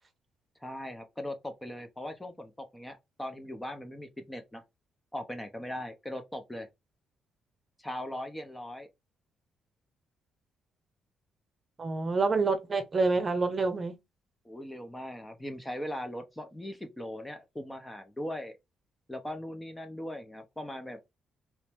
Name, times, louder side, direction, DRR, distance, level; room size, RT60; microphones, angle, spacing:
voice 1, 0.6-4.6 5.1-6.7 7.8-8.9 14.4-18.5 19.1-21.0, left 1 dB, 10° left, 0.8 m, -39 dB
voice 2, 11.8-14.0, right 3 dB, 35° right, 0.9 m, -27 dB
3.0 x 2.7 x 3.4 m
cardioid pair, 90°, 0 cm